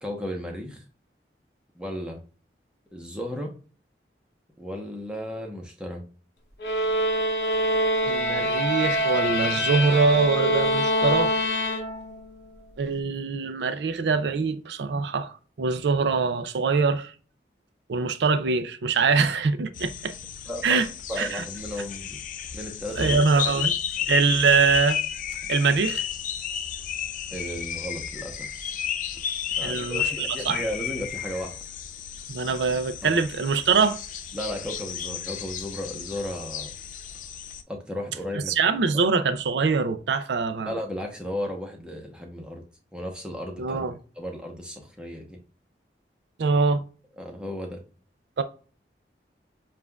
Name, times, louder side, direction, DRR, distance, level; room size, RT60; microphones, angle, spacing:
voice 1, 0.0-0.8 1.7-2.2 2.9-3.5 4.6-6.0 20.5-20.8 21.1-22.2 22.5-23.3 27.3-28.7 29.6-31.5 32.5-32.6 33.0-33.1 34.3-36.7 37.7-38.5 40.7-42.6 42.9-43.8 44.2-45.4 47.2-47.8, equal, 5° right, 0.8 m, -34 dB
sound 1, 6.6-12.3, equal, 70° left, 0.7 m, -25 dB
voice 2, 8.0-11.3 12.8-17.1 17.9-20.1 20.6-20.9 21.2-21.4 23.0-23.7 24.1-25.0 25.5-26.0 29.6-30.6 32.3-34.0 38.3-40.8 43.6-43.9 46.4-46.8 48.4-48.5, right 4 dB, 75° right, 0.4 m, -23 dB
sound 2, 19.7-37.6, left 9 dB, 45° left, 0.4 m, -33 dB
7.1 x 2.4 x 2.2 m
head